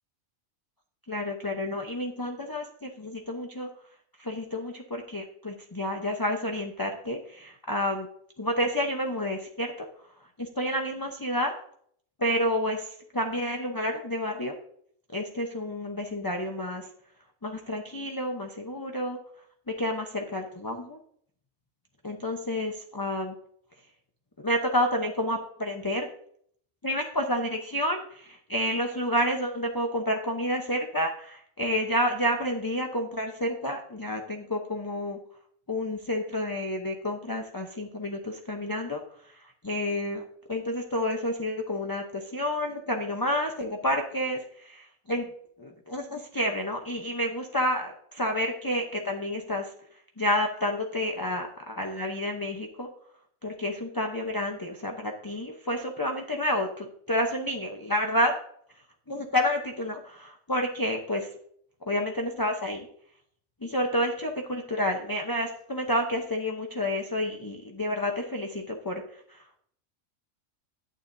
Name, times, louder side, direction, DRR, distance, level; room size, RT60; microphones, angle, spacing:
voice 1, 1.1-3.7 4.2-8.1 8.4-9.9 10.4-11.5 12.2-14.5 15.1-16.9 17.4-19.2 19.7-21.0 22.0-23.4 24.4-26.1 26.8-35.2 35.7-45.3 45.6-49.7 50.2-52.9 53.4-58.3 59.1-61.3 61.9-62.9 63.6-69.4, left 1 dB, 20° left, 2 dB, 0.7 m, -30 dB
11.5 x 9.2 x 2.7 m, 0.63 s
omnidirectional pair, 1.3 m